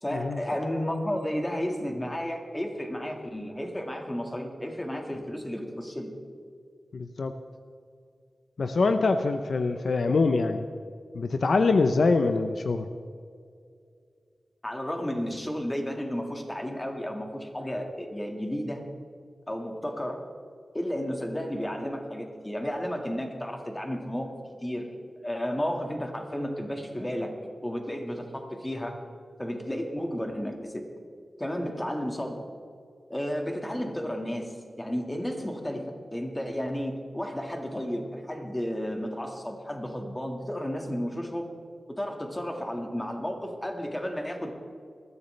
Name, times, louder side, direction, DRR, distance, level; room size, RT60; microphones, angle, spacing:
voice 1, 0.0-6.1 14.6-18.9 19.5-20.2 20.7-24.9 25.2-27.3 27.6-29.0 29.4-30.8 31.4-32.4 33.1-41.5 42.0-44.5, equal, 15° left, 3 dB, 1.8 m, -32 dB
voice 2, 6.9-7.3 8.6-10.7 11.1-12.9, left 3 dB, 65° left, 8 dB, 0.7 m, -24 dB
20.5 x 14.0 x 3.3 m, 2.3 s
wide cardioid pair, 105°, 0 cm